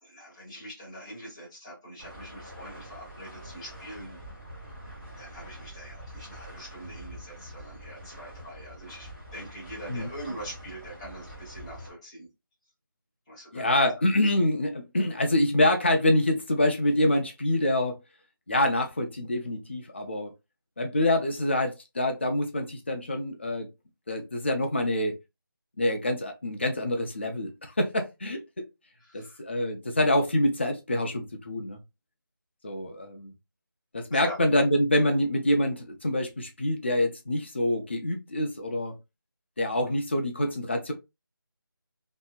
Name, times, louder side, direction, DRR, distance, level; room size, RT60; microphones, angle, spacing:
voice 1, 0.0-4.2 5.2-12.3 13.3-13.7 29.0-29.4 34.1-34.4, right 1 dB, 15° left, 0.9 m, -43 dB
sound 1, 2.0-11.9, right 1 dB, 30° right, 1.5 m, -45 dB
voice 2, 13.5-18.0 18.5-20.3 20.8-23.7 24.1-25.2 25.8-28.4 29.1-31.8 32.6-33.3 33.9-39.0 39.6-40.9, left 1 dB, 30° left, 0.5 m, -26 dB
2.7 x 2.7 x 2.3 m
figure-of-eight pair, 165°, 12 cm